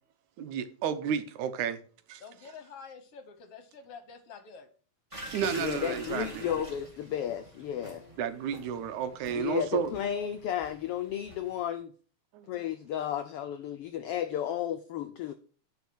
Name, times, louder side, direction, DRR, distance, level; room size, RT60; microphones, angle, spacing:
voice 1, 0.4-1.8 2.1-2.2 5.3-6.4 8.2-9.9 12.3-12.6, right 7 dB, 85° right, 2.4 m, -32 dB
voice 2, 2.2-4.7, left 5 dB, 60° left, 1.7 m, -48 dB
sound 1, 5.1-11.6, right 2 dB, 15° right, 1.6 m, -45 dB
voice 3, 5.6-8.0 9.3-11.9 12.5-15.3, left 10 dB, 85° left, 1.3 m, -33 dB
10.5 x 4.8 x 6.2 m
omnidirectional pair, 3.4 m